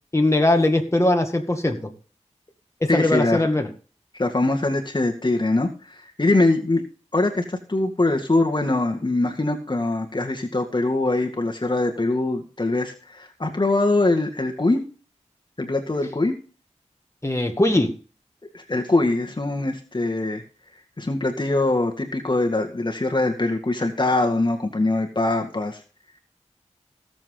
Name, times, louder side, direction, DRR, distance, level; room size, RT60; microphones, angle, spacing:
voice 1, 0.1-1.9 2.8-3.7 17.2-17.9, left 1 dB, 25° left, 3 dB, 2.0 m, -20 dB
voice 2, 2.9-3.4 4.1-5.7 6.2-6.8 7.1-14.8 15.6-16.3 18.5-20.4 21.0-25.8, left 2 dB, 40° left, 3 dB, 2.0 m, -22 dB
17.5 x 7.4 x 3.8 m, 0.37 s
wide cardioid pair, 60°, 12 cm